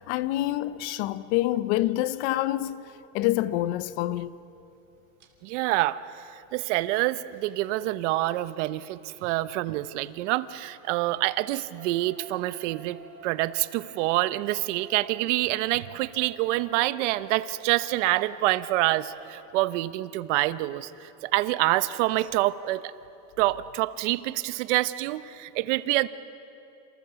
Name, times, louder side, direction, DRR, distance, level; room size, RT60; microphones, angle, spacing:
voice 1, 0.0-4.4, left 15 dB, 65° left, 0.9 m, -27 dB
sound 1, 5.2-5.3 7.0-10.5 10.8-19.5 21.2-21.3 21.5-21.6 21.9-22.0, right 6 dB, 30° right, 2.9 m, -51 dB
voice 2, 5.4-22.9 23.4-26.1, right 17 dB, 75° right, 1.1 m, -27 dB
28.5 x 28.5 x 7.1 m
cardioid pair, 175°, 36 cm